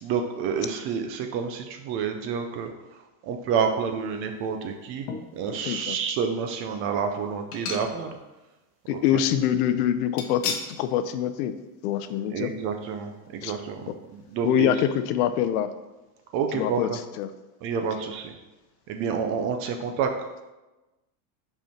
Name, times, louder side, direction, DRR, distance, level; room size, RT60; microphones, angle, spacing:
voice 1, 0.0-5.1 5.3-8.1 8.9-9.0 12.3-14.7 16.3-17.0 17.6-18.3 18.9-20.3, right 6 dB, 30° right, 5 dB, 0.3 m, -29 dB
sound 1, 5.0-5.6 6.2-6.3 7.5-8.3 8.6-8.7 10.2-10.8 11.2-11.3 11.7-11.8, left 6 dB, 45° left, 0.9 m, -34 dB
voice 2, 5.6-6.0 8.9-11.5 11.8-12.5 13.4-13.5 14.4-15.7 16.5-16.9 17.2-17.3, left 10 dB, 85° left, 11 dB, 0.8 m, -25 dB
5.6 x 4.4 x 5.7 m, 1.1 s
cardioid pair, 170°, 44 cm